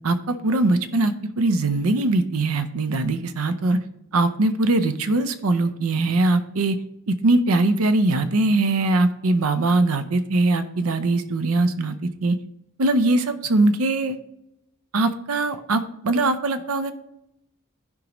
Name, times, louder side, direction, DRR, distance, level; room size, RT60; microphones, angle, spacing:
voice 1, 0.0-3.8 4.1-6.8 7.1-12.4 12.8-14.2 14.9-16.9, right 2 dB, 70° right, 10 dB, 0.6 m, -21 dB
14.0 x 5.1 x 3.0 m, 0.83 s
head